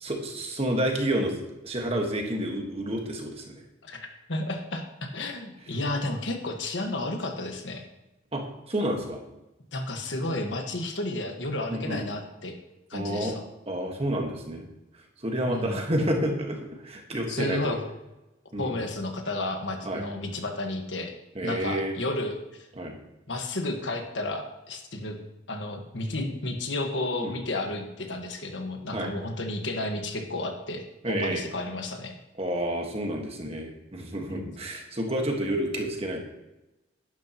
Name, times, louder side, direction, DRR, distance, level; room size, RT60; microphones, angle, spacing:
voice 1, 0.0-1.4 1.6-3.5 8.3-9.2 11.7-12.0 12.9-13.4 13.7-14.6 15.2-17.7 18.5-18.8 19.8-20.0 21.3-21.9 22.8-23.0 27.2-27.4 28.9-29.1 31.0-31.4 32.4-36.2, right 1 dB, 35° right, 2 dB, 1.5 m, -29 dB
voice 2, 3.8-7.8 9.7-12.6 12.9-13.4 15.4-15.8 17.3-17.9 18.6-21.1 21.4-22.7 23.3-25.2 25.5-32.2 34.3-34.5, left 2 dB, 75° left, 4 dB, 1.5 m, -32 dB
11.0 x 11.0 x 3.0 m, 0.96 s
head